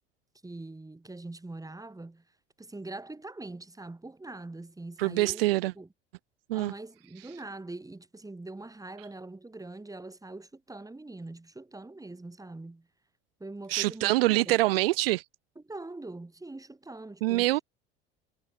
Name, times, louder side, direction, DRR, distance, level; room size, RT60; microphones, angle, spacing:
voice 1, 0.4-2.2 2.6-5.4 5.8-5.9 6.5-12.9 13.4-14.6 15.6-17.5, right 2 dB, 10° right, 7.7 m, -43 dB
voice 2, 5.0-5.7 6.5-6.7 13.7-15.2 17.2-17.6, right 18 dB, 75° right, 0.6 m, -25 dB
hypercardioid pair, 70°, 29 cm